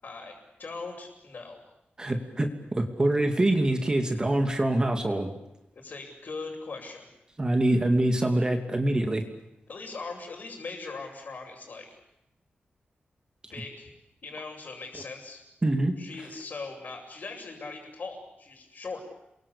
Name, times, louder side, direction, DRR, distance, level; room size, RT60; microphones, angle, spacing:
voice 1, 0.0-1.7 5.7-7.1 9.7-12.0 13.5-13.9 14.2-15.4 16.0-19.0, left 3 dB, 50° left, -5 dB, 6.9 m, -40 dB
voice 2, 2.0-5.3 7.4-9.2 15.6-15.9, right 1 dB, 20° right, 5 dB, 2.7 m, -25 dB
30.0 x 23.5 x 8.6 m, 0.87 s
wide cardioid pair, 160°, 4 cm